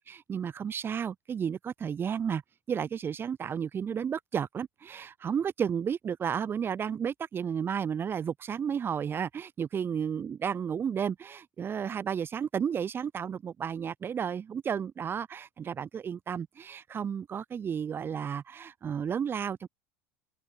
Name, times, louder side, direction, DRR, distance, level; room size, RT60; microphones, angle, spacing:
voice 1, 0.1-2.4 2.7-19.7, right 7 dB, 35° right, 4.4 m, -32 dB
open air
hypercardioid pair, 75°, 7 cm